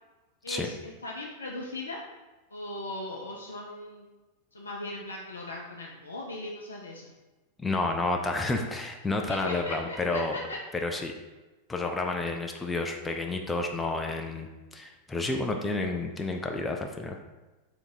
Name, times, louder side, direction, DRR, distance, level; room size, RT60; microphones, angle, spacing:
voice 1, 0.4-2.0 2.5-4.1 4.5-7.1 9.3-10.6, left 1 dB, 75° left, -2 dB, 0.5 m, -38 dB
voice 2, 7.6-10.4 10.7-11.1 11.7-17.2, left 2 dB, 10° left, 3 dB, 0.4 m, -30 dB
3.6 x 2.9 x 4.2 m, 1.1 s
figure-of-eight pair, 90°, 0 cm